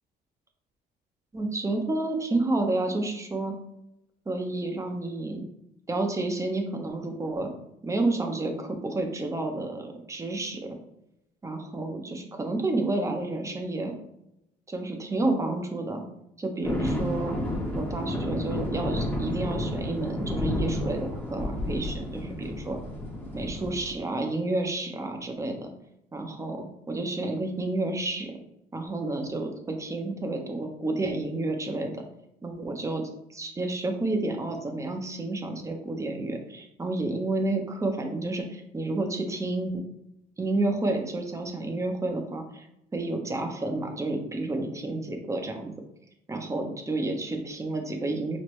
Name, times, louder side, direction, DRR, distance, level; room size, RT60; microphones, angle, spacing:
voice 1, 1.3-3.5 4.3-5.4 5.9-7.5 7.8-10.8 11.4-13.9 14.7-16.0 16.4-17.4 17.7-22.8 23.3-25.7 26.1-28.4 28.7-31.9 32.4-33.0 33.3-39.8 40.4-42.7 42.9-45.7 46.3-48.4, right 2 dB, 20° right, 4 dB, 0.8 m, -30 dB
sound 1, 16.6-23.9, left 1 dB, 10° left, 1.0 m, -31 dB
6.1 x 2.1 x 3.1 m, 0.83 s
cardioid pair, 110°, 17 cm